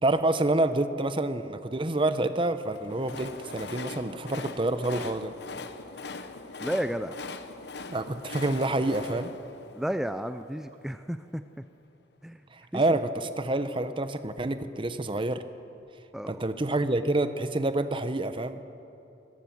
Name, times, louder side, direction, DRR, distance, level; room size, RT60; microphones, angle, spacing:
voice 1, 0.0-5.3 7.9-9.3 12.5-15.4 16.3-18.6, right 2 dB, 30° right, 11 dB, 0.8 m, -28 dB
Train, 2.5-10.7, left 3 dB, 65° left, 1.0 m, -41 dB
voice 2, 6.6-7.2 9.7-11.6 12.2-12.4 12.7-12.8 16.1-16.5, equal, ahead, 9 dB, 0.4 m, -32 dB
26.0 x 14.0 x 7.2 m, 2.8 s
head